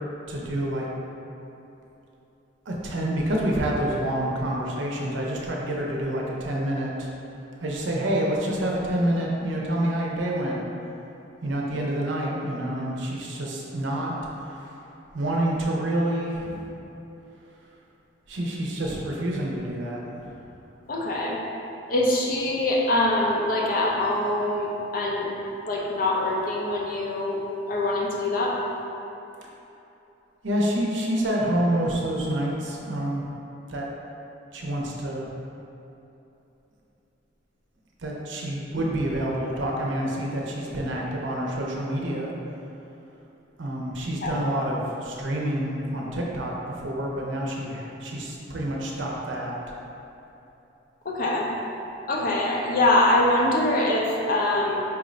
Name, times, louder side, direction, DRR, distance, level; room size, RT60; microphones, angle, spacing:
voice 1, 0.3-0.9 2.7-7.1 7.6-10.6 11.4-14.1 14.4-14.8 15.1-16.7 18.3-20.4 30.4-33.3 33.7-33.9 34.5-35.3 38.0-42.3 43.6-49.6, right 1 dB, 75° right, -2 dB, 0.6 m, -28 dB
voice 2, 20.9-21.4 21.9-25.3 25.6-27.4 27.7-28.6 44.2-44.4 51.0-51.5 52.1-54.8, left 1 dB, 45° left, -2 dB, 0.5 m, -24 dB
4.6 x 2.5 x 3.1 m, 3.0 s
head